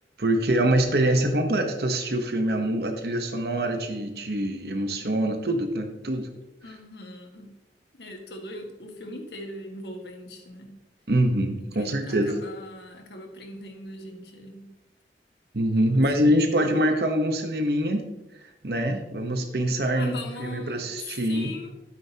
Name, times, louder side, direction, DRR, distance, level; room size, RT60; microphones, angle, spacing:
voice 1, 0.2-6.3 11.1-12.3 15.5-18.1 18.6-21.5, right 1 dB, 65° right, 4 dB, 1.1 m, -24 dB
voice 2, 6.6-7.5 7.9-10.8 11.8-14.7 15.9-16.7 19.9-21.8, left 1 dB, 75° left, 3 dB, 1.7 m, -40 dB
13.0 x 9.2 x 2.9 m, 0.97 s
head